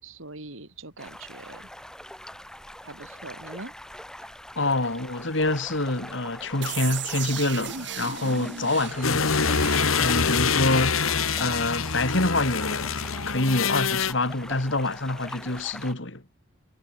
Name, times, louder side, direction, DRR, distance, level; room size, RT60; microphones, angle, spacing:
voice 1, 0.0-1.7 2.8-3.7, right 2 dB, 75° right, 3.8 m, -42 dB
sound 1, 1.0-15.9, left 1 dB, 5° left, 4.0 m, -43 dB
voice 2, 4.6-9.6 10.0-11.0 11.4-12.9 13.3-16.2, left 2 dB, 65° left, 2.7 m, -26 dB
sound 2, 6.6-13.4, right 9 dB, 55° right, 2.1 m, -38 dB
sound 3, 9.0-14.1, left 5 dB, 90° left, 1.5 m, -25 dB
head